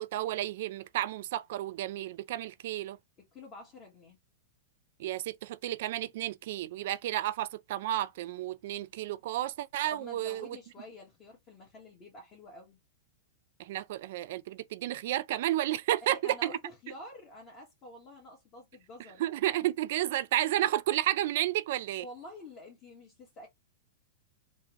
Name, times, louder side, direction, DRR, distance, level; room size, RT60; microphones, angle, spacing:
voice 1, 0.0-3.0 5.0-10.6 13.6-16.5 19.2-22.1, right 14 dB, 60° right, 0.3 m, -32 dB
voice 2, 3.3-4.2 9.9-12.8 16.1-19.2 22.0-23.5, left 1 dB, 30° left, 1.6 m, -48 dB
3.5 x 2.2 x 3.1 m
hypercardioid pair, 135°, 0 cm